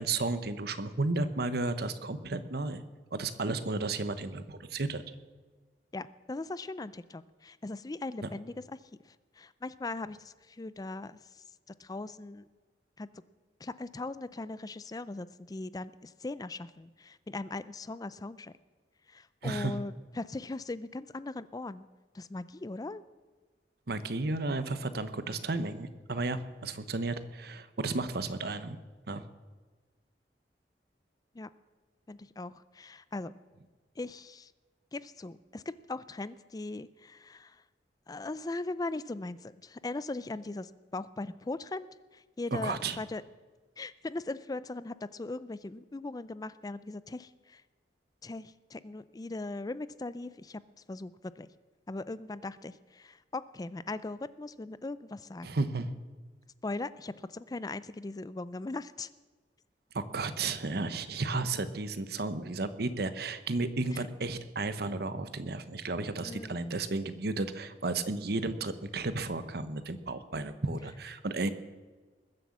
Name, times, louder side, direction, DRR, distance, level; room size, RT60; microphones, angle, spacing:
voice 1, 0.0-2.8 3.1-5.0 19.4-19.8 23.9-28.8 29.1-29.2 42.5-43.0 55.4-55.9 59.9-71.5, right 3 dB, 65° right, 12 dB, 0.9 m, -33 dB
voice 2, 5.9-12.5 13.0-13.1 13.6-18.5 19.1-21.8 22.1-23.0 31.3-31.5 32.1-33.3 34.0-34.5 34.9-35.6 35.9-37.6 38.1-43.2 43.8-47.6 48.2-50.6 50.9-51.5 51.9-55.5 56.6-59.1 63.9-64.1 66.2-66.6, left 2 dB, 20° left, 16 dB, 0.4 m, -39 dB
21.0 x 7.8 x 7.2 m, 1.3 s
head